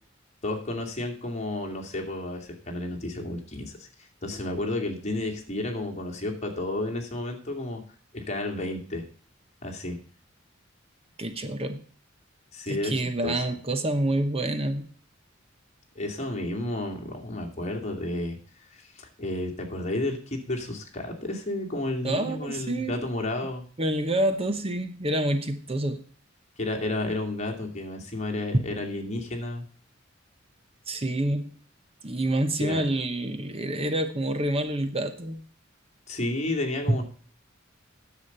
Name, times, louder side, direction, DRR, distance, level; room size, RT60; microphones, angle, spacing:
voice 1, 0.4-3.9 4.2-7.8 8.1-9.0 9.6-10.0 12.5-12.9 13.2-13.3 16.0-18.4 18.7-23.6 26.6-29.6 32.6-32.8 36.1-37.0, left 2 dB, 35° left, 1 dB, 2.4 m, -31 dB
voice 2, 11.2-11.8 12.7-14.9 22.0-23.0 23.8-26.0 30.9-31.5 32.0-35.4 36.9-37.0, right 1 dB, 30° right, 9 dB, 1.0 m, -27 dB
10.0 x 7.2 x 6.6 m, 0.43 s
head